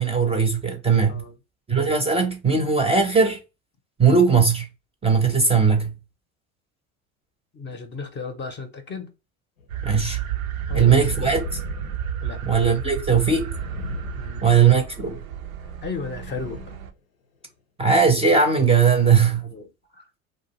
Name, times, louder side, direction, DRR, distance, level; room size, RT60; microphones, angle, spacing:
voice 1, 0.0-1.2 1.7-3.4 4.0-4.7 5.0-6.0 9.8-10.2 10.7-11.6 12.4-13.5 14.4-15.2 17.8-19.5, right 5 dB, 15° right, 0.5 m, -19 dB
voice 2, 7.5-9.1 10.7-11.0 12.2-12.4 14.2-14.6 15.0-15.1 15.8-16.8 19.4-19.7 19.9-20.0, left 4 dB, 30° left, 0.6 m, -35 dB
sound 1, 9.6-9.7 10.5-12.7 13.4-15.0 16.1-16.9 17.5-17.6, left 5 dB, 90° left, 0.6 m, -38 dB
sound 2, 9.7-16.9, right 9 dB, 85° right, 0.5 m, -32 dB
2.5 x 2.1 x 2.9 m
hypercardioid pair, 75°, 40 cm